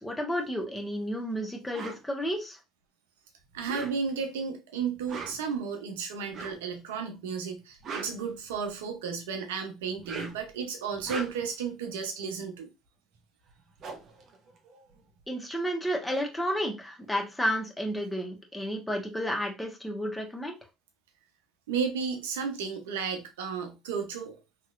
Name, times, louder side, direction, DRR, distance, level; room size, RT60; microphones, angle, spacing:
voice 1, 0.0-2.6 15.3-20.6, equal, 10° left, 1.1 m, -31 dB
sound 1, 1.7-2.0 3.5-4.3 4.9-5.5 6.3-6.7 7.6-8.9 9.9-10.5 10.9-11.6 13.1-13.2 13.5-15.2, right 4 dB, 55° right, 0.8 m, -41 dB
voice 2, 3.5-12.7 21.7-24.4, right 6 dB, 90° right, 0.7 m, -33 dB
3.1 x 2.9 x 2.5 m
hypercardioid pair, 75°, 0 cm